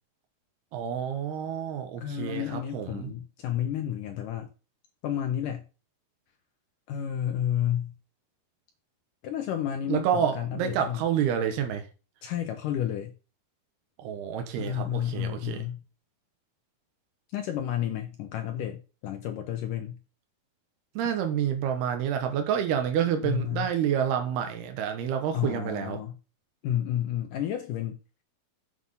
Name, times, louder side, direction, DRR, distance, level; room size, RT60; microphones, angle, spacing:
voice 1, 0.7-3.1 9.9-11.9 14.0-15.6 21.0-26.0, right 9 dB, 75° right, 3.2 m, -28 dB
voice 2, 2.0-4.5 5.0-5.6 6.9-7.9 9.2-11.0 12.2-13.1 14.6-15.8 17.3-20.0 23.2-23.7 25.3-26.2 26.6-28.0, left 10 dB, 80° left, 1.9 m, -31 dB
7.8 x 6.9 x 5.6 m
omnidirectional pair, 4.8 m